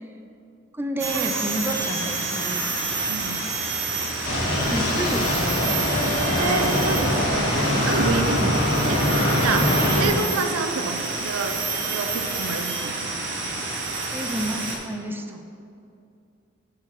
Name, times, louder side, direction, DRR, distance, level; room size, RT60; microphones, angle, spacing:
voice 1, 0.7-2.7 4.7-5.8 14.1-15.4, equal, 10° right, 4 dB, 0.4 m, -30 dB
sound 1, 1.0-14.8, right 3 dB, 60° right, 1.1 m, -28 dB
voice 2, 3.1-3.4 6.3-7.5 7.9-9.1 9.4-11.6 11.9-13.1 15.3-15.4, right 3 dB, 90° right, 5 dB, 0.5 m, -28 dB
sound 2, 4.2-10.1, left 1 dB, 70° left, 1.5 m, -23 dB
9.9 x 3.8 x 4.5 m, 2.6 s
head